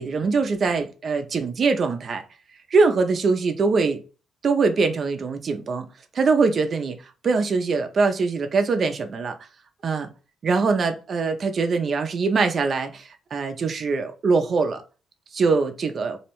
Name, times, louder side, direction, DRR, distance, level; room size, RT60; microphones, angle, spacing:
voice 1, 0.0-2.2 2.7-4.0 4.4-5.9 6.1-7.0 7.2-9.4 9.8-10.1 10.4-14.8 15.3-16.2, right 4 dB, 50° right, 0.4 m, -22 dB
2.7 x 2.1 x 2.9 m
cardioid pair, 90°, 0 cm